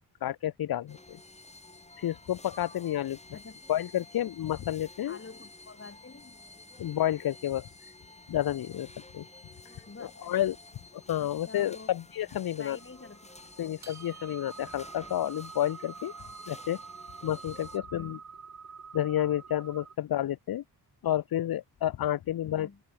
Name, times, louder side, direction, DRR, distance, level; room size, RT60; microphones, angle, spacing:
voice 1, 0.2-1.2 2.0-3.2 3.7-5.2 6.8-7.7 8.3-8.9 9.1-9.2 10.3-10.6 10.9-12.8 13.6-16.1 16.5-16.8 17.2-18.2 18.9-20.6 21.0-22.7, left 12 dB, 65° left, 0.7 m, -30 dB
sound 1, 0.9-17.8, left 2 dB, 15° left, 3.5 m, -52 dB
voice 2, 5.1-6.4 9.9-10.4 11.2-11.9 12.6-13.8 17.9-18.2 22.4-22.8, left 4 dB, 30° left, 7.0 m, -48 dB
sound 2, 12.8-20.0, right 6 dB, 40° right, 2.6 m, -47 dB
wide cardioid pair, 135°, 40 cm